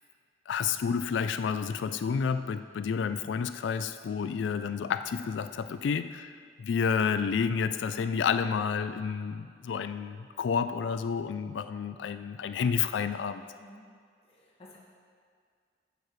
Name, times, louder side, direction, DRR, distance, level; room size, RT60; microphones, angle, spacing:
voice 1, 0.5-13.4, left 6 dB, 90° left, 10 dB, 0.3 m, -30 dB
voice 2, 14.2-14.8, left 1 dB, 35° left, -5 dB, 1.8 m, -53 dB
14.0 x 6.9 x 3.2 m, 2.1 s
head